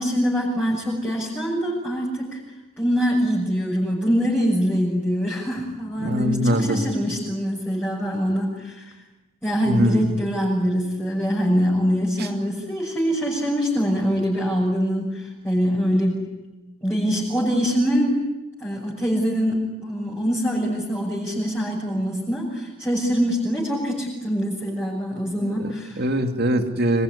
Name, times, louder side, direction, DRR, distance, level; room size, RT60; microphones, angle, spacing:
voice 1, 0.0-2.4 2.8-8.9 9.4-16.3 16.8-18.2 18.6-26.0, equal, 10° left, -6 dB, 6.5 m, -24 dB
voice 2, 6.0-6.9 9.6-10.2 12.2-12.3 25.4-27.0, equal, 50° right, 6 dB, 2.6 m, -23 dB
26.0 x 22.0 x 10.0 m, 1.0 s
head